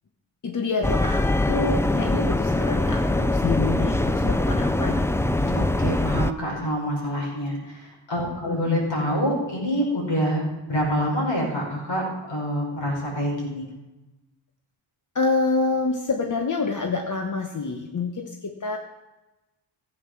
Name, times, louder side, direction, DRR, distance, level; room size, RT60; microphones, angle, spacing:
voice 1, 0.4-5.1 8.5-8.8 15.1-18.8, left 3 dB, 40° left, 3 dB, 1.0 m, -27 dB
sound 1, 0.8-6.3, left 2 dB, 5° left, 0.3 m, -23 dB
voice 2, 5.2-13.7, equal, 60° left, -2 dB, 5.6 m, -26 dB
16.0 x 8.2 x 6.0 m, 1.1 s
wide cardioid pair, 120°, 49 cm